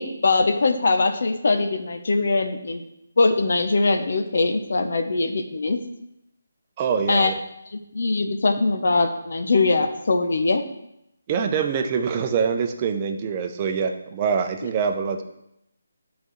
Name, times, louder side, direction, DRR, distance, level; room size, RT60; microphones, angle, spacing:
voice 1, 0.0-2.8 3.2-5.8 7.1-7.3 7.7-10.6, left 3 dB, 60° left, 6 dB, 0.9 m, -22 dB
voice 2, 6.8-7.3 11.3-15.2, right 6 dB, 25° right, 5 dB, 0.7 m, -24 dB
12.0 x 4.1 x 3.1 m, 0.82 s
figure-of-eight pair, 155°, 0 cm